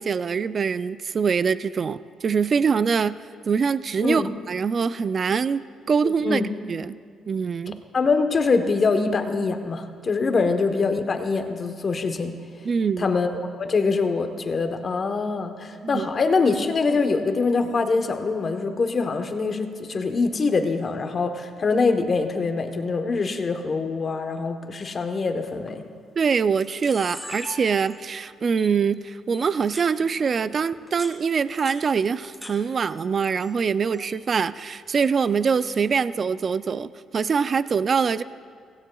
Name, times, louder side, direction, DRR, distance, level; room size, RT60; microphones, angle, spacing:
voice 1, 0.0-3.2 3.5-5.6 5.9-6.4 6.7-7.0 7.3-7.8 10.4-10.5 12.6-13.1 15.8-16.1 26.2-38.2, right 6 dB, 45° right, 15 dB, 0.3 m, -24 dB
voice 2, 6.0-6.5 7.9-12.3 13.0-13.3 13.6-25.8, left 4 dB, 40° left, 7 dB, 1.0 m, -24 dB
Camera, 25.5-25.7 26.3-26.4 26.6-28.2 28.6-28.7 29.3-29.9 30.7-32.5 32.8-33.5 33.8-34.2 35.0-35.8, equal, ahead, 2.2 m, -41 dB
16.5 x 16.5 x 2.3 m, 2.1 s
cardioid pair, 90°, 0 cm